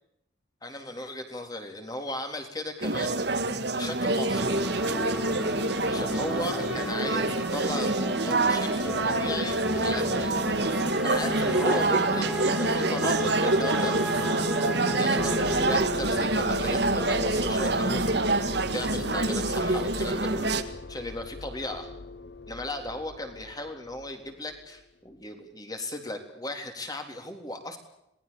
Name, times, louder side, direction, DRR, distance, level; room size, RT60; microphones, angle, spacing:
voice 1, 0.6-3.2 3.7-4.5 5.9-14.0 15.0-18.4 18.7-21.9 22.5-27.8, left 1 dB, 20° left, 5 dB, 3.6 m, -36 dB
sound 1, 2.8-20.6, right 2 dB, 55° right, 1.7 m, -26 dB
sound 2, 4.3-15.8, equal, ahead, 3.8 m, -34 dB
sound 3, 15.2-24.7, left 3 dB, 55° left, 0.8 m, -38 dB
27.0 x 19.5 x 7.1 m, 0.81 s
head